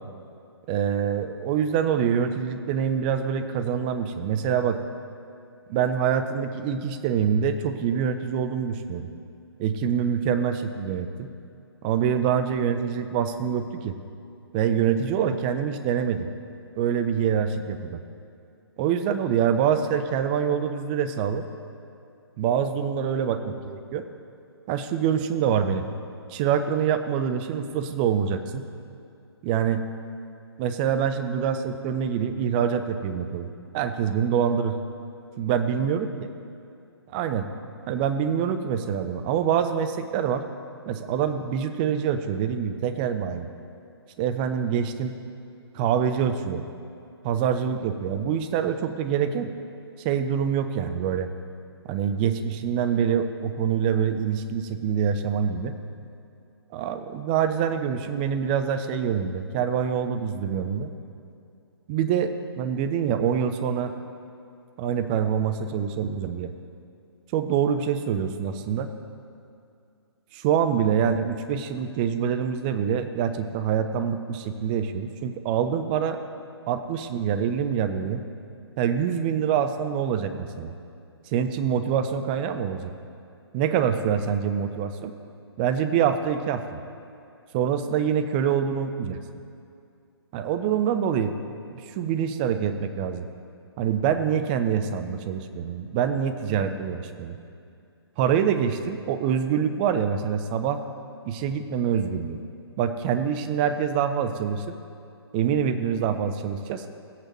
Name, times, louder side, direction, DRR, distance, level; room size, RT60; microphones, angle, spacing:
voice 1, 0.7-4.8 5.7-9.1 9.6-11.3 11.8-13.9 14.5-16.3 16.8-18.0 18.8-21.5 22.4-24.1 24.7-25.9 26.3-28.7 29.4-29.8 30.6-33.5 33.7-34.8 35.4-36.3 37.1-37.5 37.9-40.4 40.9-43.5 44.2-45.2 45.7-46.6 47.2-49.5 50.0-51.3 51.9-55.8 56.7-60.9 61.9-63.9 64.8-66.5 67.3-68.9 70.3-76.2 76.7-78.2 78.8-80.7 81.3-82.9 83.5-85.1 85.6-86.8 87.5-89.2 90.3-91.3 91.7-93.3 93.8-97.4 98.2-100.8 101.3-102.4 102.8-104.8 105.3-106.8, right 8 dB, 20° right, 8 dB, 0.5 m, -25 dB
17.0 x 8.4 x 3.0 m, 2.5 s
figure-of-eight pair, 130°, 14 cm